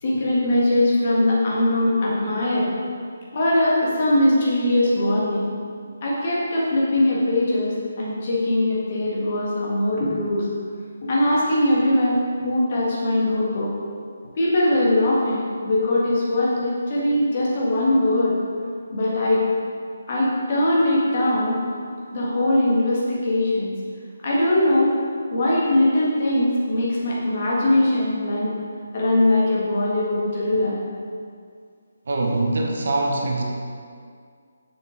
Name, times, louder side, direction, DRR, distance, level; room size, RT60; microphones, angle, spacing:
voice 1, 0.0-2.7 3.3-5.5 6.0-10.5 11.0-13.7 14.4-18.3 18.9-19.4 20.1-21.6 22.1-23.7 24.2-24.9 25.3-28.5 28.9-30.8, left 1 dB, 40° left, -6 dB, 1.9 m, -21 dB
voice 2, 32.1-33.4, right 2 dB, 50° right, 0 dB, 1.0 m, -23 dB
6.7 x 6.6 x 3.9 m, 2.2 s
figure-of-eight pair, 145°, 0 cm